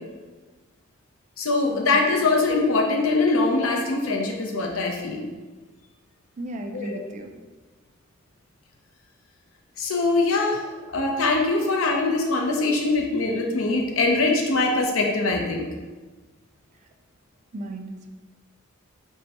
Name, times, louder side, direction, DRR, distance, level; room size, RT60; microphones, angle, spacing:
voice 1, 1.4-5.3 6.7-7.0 9.8-10.6 10.9-15.6, left 3 dB, 80° left, 1 dB, 0.6 m, -22 dB
voice 2, 6.4-7.3 17.5-18.1, right 1 dB, 35° right, 4 dB, 0.3 m, -35 dB
5.3 x 2.2 x 2.9 m, 1.3 s
head